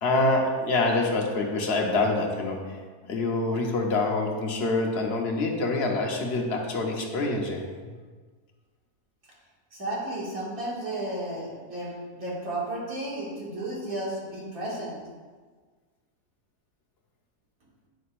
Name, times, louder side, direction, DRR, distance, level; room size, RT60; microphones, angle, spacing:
voice 1, 0.0-2.8 3.1-7.6, left 2 dB, 45° left, 0 dB, 1.1 m, -26 dB
voice 2, 9.7-15.0, right 1 dB, 65° right, -6 dB, 2.5 m, -33 dB
9.3 x 6.5 x 2.5 m, 1.5 s
omnidirectional pair, 1.6 m